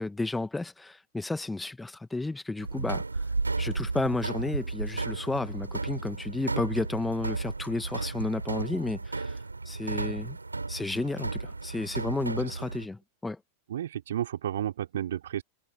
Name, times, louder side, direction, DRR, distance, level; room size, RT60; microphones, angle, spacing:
voice 1, 0.0-3.0 3.6-9.4 9.6-10.4 10.7-13.4, left 2 dB, 10° left, 1.5 m, -32 dB
sound 1, 2.6-12.9, right 3 dB, 80° right, 7.4 m, -33 dB
voice 2, 13.7-15.4, right 11 dB, 60° right, 4.0 m, -32 dB
figure-of-eight pair, 90°, 0 cm